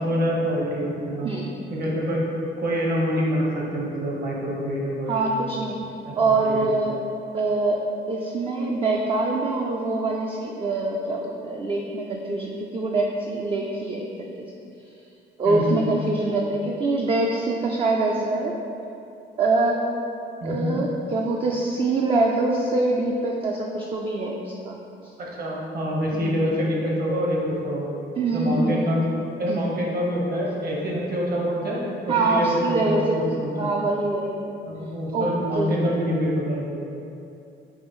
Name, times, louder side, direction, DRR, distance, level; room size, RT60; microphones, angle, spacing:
voice 1, 0.0-1.3 1.7-2.2 2.6-5.3 6.0-6.6 15.4-15.9 20.4-20.7 25.2-27.9 28.3-29.1 29.4-33.7 34.7-36.7, equal, 50° right, -4 dB, 1.0 m, -26 dB
voice 2, 5.1-5.7 6.2-7.0 7.3-7.8 8.1-14.5 15.4-18.5 19.4-19.8 20.4-24.8 26.1-26.3 28.2-28.8 29.5-29.6 32.1-34.6 35.1-35.3 35.5-35.7, right 3 dB, 30° right, -1 dB, 0.3 m, -24 dB
5.4 x 2.6 x 3.0 m, 2.7 s
cardioid pair, 90°, 20 cm